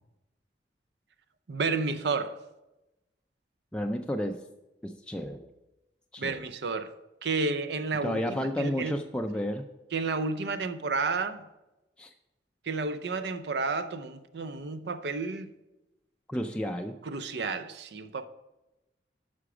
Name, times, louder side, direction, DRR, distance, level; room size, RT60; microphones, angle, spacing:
voice 1, 1.5-2.4 6.2-6.9 7.2-9.0 9.9-11.4 12.7-15.5 17.0-18.3, right 4 dB, 65° right, 0.5 m, -31 dB
voice 2, 3.7-4.4 4.8-5.5 6.1-6.4 8.0-9.7 12.0-12.1 16.3-16.9, equal, 5° left, 0.4 m, -31 dB
9.6 x 5.9 x 4.9 m
head